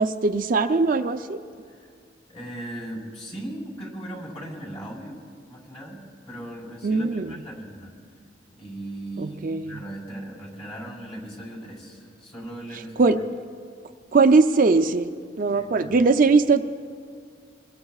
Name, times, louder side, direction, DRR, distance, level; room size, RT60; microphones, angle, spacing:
voice 1, 0.0-1.4 6.8-7.4 9.2-9.8 12.7-13.2 14.1-15.1 15.4-16.6, right 4 dB, 45° right, 8 dB, 0.5 m, -20 dB
voice 2, 2.3-5.2 5.5-6.0 6.3-7.9 8.6-9.4 9.7-13.1 15.5-15.9, right 1 dB, 35° left, -3 dB, 4.4 m, -38 dB
25.0 x 21.0 x 2.4 m, 2.1 s
head